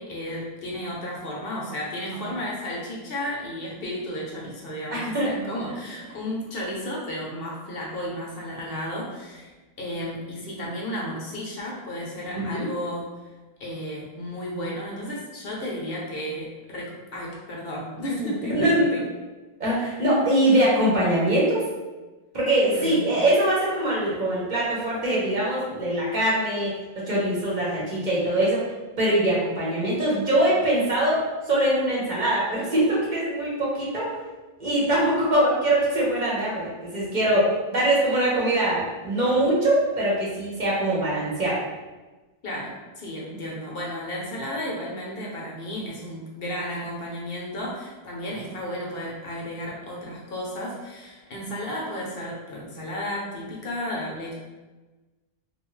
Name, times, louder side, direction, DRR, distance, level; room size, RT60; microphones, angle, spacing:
voice 1, 0.0-13.1 13.6-19.0 22.7-23.0 42.4-54.3, equal, 65° left, -3 dB, 0.9 m, -33 dB
voice 2, 4.9-5.3 12.3-12.7 18.1-19.0 19.6-21.6 22.3-28.6 29.0-34.1 34.6-41.6, right 1 dB, 50° right, -6 dB, 0.8 m, -23 dB
2.7 x 2.2 x 3.0 m, 1.2 s
omnidirectional pair, 1.1 m